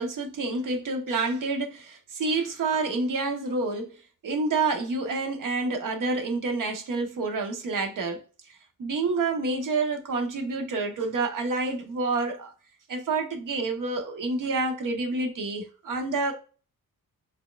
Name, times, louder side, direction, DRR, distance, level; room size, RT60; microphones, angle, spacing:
voice 1, 0.0-3.9 4.2-12.5 12.9-16.3, right 3 dB, 65° right, 1.0 m, -28 dB
4.3 x 3.7 x 2.3 m
wide cardioid pair, 125°, 34 cm